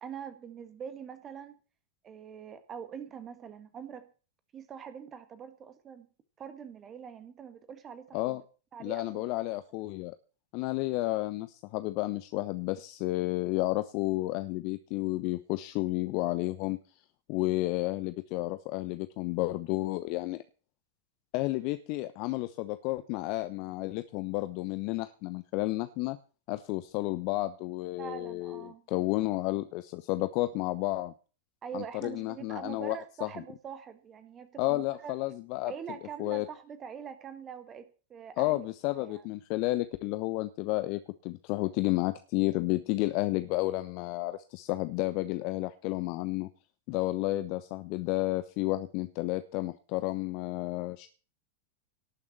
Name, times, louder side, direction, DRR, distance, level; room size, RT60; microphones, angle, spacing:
voice 1, 0.0-1.5 2.0-4.1 4.5-6.1 6.4-8.4 8.7-9.4 28.0-28.8 31.6-35.1 35.6-38.7 39.0-39.2, right 7 dB, 25° right, 11 dB, 1.6 m, -44 dB
voice 2, 8.8-10.1 10.5-16.8 17.3-20.4 21.3-26.2 26.5-31.1 31.7-33.3 34.6-35.7 36.2-36.4 38.4-46.5 46.9-51.1, left 19 dB, 45° left, 11 dB, 1.0 m, -31 dB
18.0 x 7.3 x 7.4 m, 0.37 s
figure-of-eight pair, 90°, 0 cm